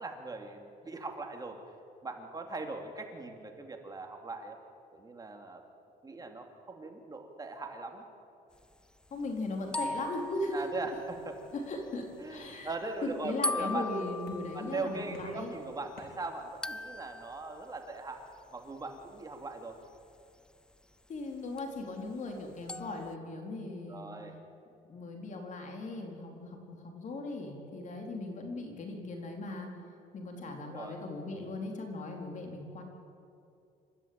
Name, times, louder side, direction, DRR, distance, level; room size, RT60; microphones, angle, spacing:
voice 1, 0.0-1.6 2.0-4.6 4.9-5.6 6.0-8.1 10.5-11.4 12.2-13.9 14.5-18.2 18.5-19.8 22.0-22.2 23.9-24.4 30.4-31.0, right 3 dB, 20° right, 3 dB, 2.9 m, -40 dB
voice 2, 9.1-10.7 11.5-12.7 13.0-15.5 21.1-24.1 24.9-29.7 30.1-32.8, left 2 dB, 45° left, 2 dB, 4.2 m, -38 dB
sound 1, 9.7-11.7 13.4-15.7 16.6-17.4 21.6-21.7 22.7-23.2, left 2 dB, 5° left, 0.4 m, -38 dB
sound 2, 10.9-12.3 12.6-13.3 14.3-14.8 15.1-16.7, left 4 dB, 75° left, 4.2 m, -58 dB
28.0 x 12.5 x 8.9 m, 2.6 s
cardioid pair, 110°, 17 cm